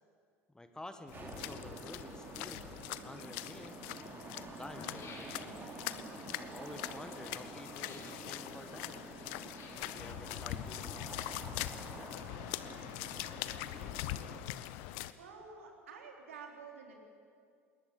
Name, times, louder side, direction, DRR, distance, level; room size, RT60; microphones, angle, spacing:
voice 1, 0.5-3.8 4.5-5.3 6.3-8.9 9.8-11.3 11.7-12.1, left 1 dB, 10° left, 9 dB, 1.5 m, -51 dB
sound 1, 1.1-15.1, left 15 dB, 60° left, 0.8 m, -43 dB
sound 2, 1.1-14.4, right 3 dB, 25° right, 3.1 m, -49 dB
sound 3, 4.6-5.8 7.7-8.2 9.4-9.9 10.8-11.6 11.9-12.0, left 3 dB, 40° left, 5.6 m, -53 dB
voice 2, 15.2-17.0, right 5 dB, 75° right, 1 dB, 3.8 m, -50 dB
21.0 x 20.0 x 8.4 m, 2.3 s
figure-of-eight pair, 70°, 7 cm